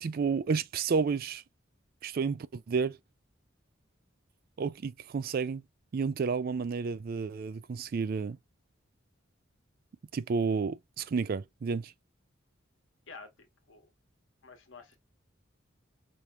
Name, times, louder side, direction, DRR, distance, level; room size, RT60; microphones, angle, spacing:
voice 1, 0.0-1.4 2.0-3.0 4.6-5.6 5.9-8.4 10.1-11.9, right 5 dB, 50° right, 0.3 m, -31 dB
voice 2, 13.1-13.9 14.4-15.0, left 4 dB, 75° left, 1.2 m, -50 dB
5.1 x 2.9 x 2.3 m
head